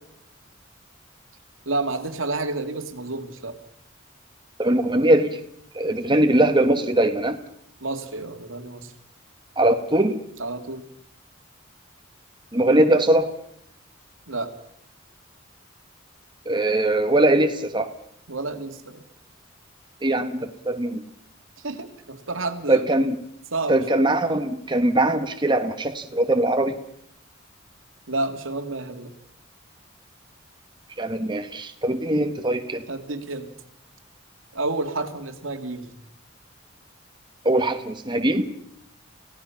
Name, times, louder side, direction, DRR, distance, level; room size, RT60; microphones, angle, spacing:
voice 1, 1.7-3.5 7.8-8.9 10.4-10.9 14.3-14.5 18.3-19.0 21.6-22.8 23.5-24.1 28.1-29.1 32.9-33.5 34.5-36.0, right 2 dB, 85° right, 6 dB, 2.2 m, -30 dB
voice 2, 4.6-5.4 5.7-7.4 9.6-10.2 12.5-13.3 16.4-17.9 20.0-21.0 22.7-23.2 23.7-26.8 31.0-32.8 37.4-38.4, right 1 dB, 25° right, 6 dB, 1.3 m, -21 dB
28.5 x 16.5 x 5.8 m, 0.75 s
head